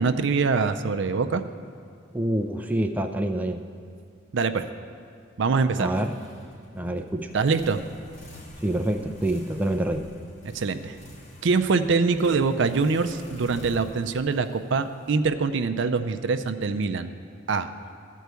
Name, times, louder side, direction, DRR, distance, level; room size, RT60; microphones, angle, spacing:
voice 1, 0.0-1.4 4.3-4.7 5.4-5.9 7.3-7.8 10.4-11.0 11.4-17.1 17.5-17.7, right 4 dB, 70° right, 9 dB, 0.5 m, -24 dB
voice 2, 2.1-3.6 5.8-6.1 6.7-7.3 8.6-10.1, right 1 dB, 10° right, 5 dB, 0.4 m, -26 dB
sound 1, 5.9-15.7, equal, 40° left, 1.3 m, -47 dB
13.5 x 4.6 x 8.1 m, 2.2 s
head